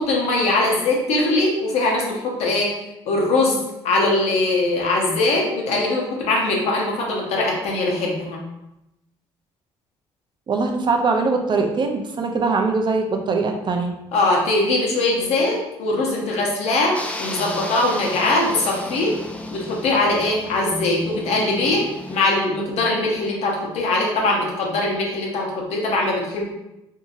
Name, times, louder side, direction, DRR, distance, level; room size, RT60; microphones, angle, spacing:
voice 1, 0.0-2.7 3.1-3.6 3.8-8.4 14.1-19.2 19.5-26.5, left 2 dB, 70° left, -2 dB, 0.8 m, -21 dB
voice 2, 10.5-13.9, right 4 dB, 40° right, 4 dB, 0.5 m, -22 dB
sound 1, 16.9-22.2, left 1 dB, 10° left, 0.4 m, -34 dB
2.7 x 2.7 x 2.5 m, 0.90 s
supercardioid pair, 60°, 11 cm